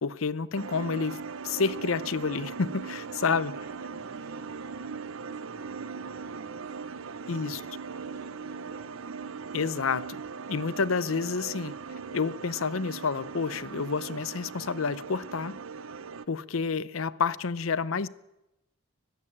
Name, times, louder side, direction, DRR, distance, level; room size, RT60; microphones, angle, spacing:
voice 1, 0.0-3.5 7.3-7.6 9.5-10.2 10.5-11.7 12.1-15.6 16.3-18.1, left 5 dB, 70° left, 0.7 m, -29 dB
sound 1, 0.5-16.3, right 5 dB, 70° right, 0.7 m, -39 dB
voice 2, 3.5-4.8 5.2-9.0, right 2 dB, 55° right, 4.9 m, -55 dB
20.0 x 15.5 x 8.7 m
head